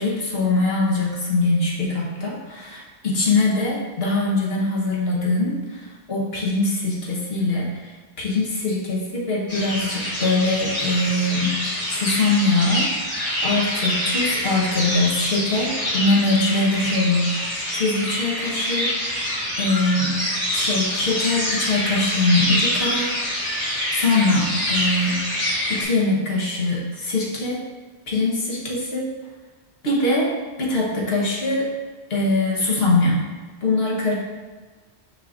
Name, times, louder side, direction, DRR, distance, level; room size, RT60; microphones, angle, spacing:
voice 1, 0.0-7.7 8.2-12.9 13.4-20.1 20.5-25.2 25.7-27.6 28.1-29.1 29.8-30.3 30.6-31.7 32.1-33.3 33.6-34.1, left 2 dB, 65° left, -5 dB, 1.6 m, -22 dB
sound 1, 9.5-25.8, equal, 30° left, 2.0 m, -26 dB
6.3 x 5.7 x 2.6 m, 1.4 s
omnidirectional pair, 1.1 m